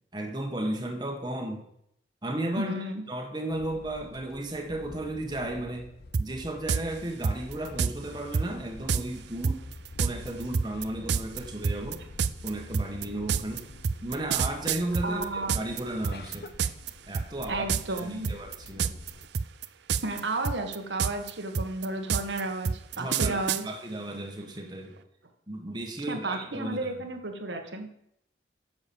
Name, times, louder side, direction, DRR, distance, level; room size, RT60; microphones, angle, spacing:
voice 1, 0.1-1.6 2.2-5.9 6.2-9.6 10.0-12.0 12.4-13.7 14.0-16.5 17.1-17.7 18.0-19.0 23.0-25.0 25.5-26.9, right 1 dB, 25° right, 2 dB, 1.5 m, -34 dB
voice 2, 2.6-3.0 15.0-15.6 17.5-18.3 20.0-23.6 26.1-27.9, right 2 dB, 90° right, 4 dB, 1.7 m, -32 dB
sound 1, 3.5-19.3, left 2 dB, 60° left, 0.7 m, -47 dB
sound 2, 6.1-6.3 6.7-6.8 7.2-7.9 8.3-8.5 8.9-9.0 9.4-15.8 16.0-16.9 17.1-17.4 17.7-18.0 18.2-19.1 19.3-20.2 20.4-23.6, right 6 dB, 75° right, 0.5 m, -27 dB
9.9 x 7.0 x 7.1 m, 0.75 s
head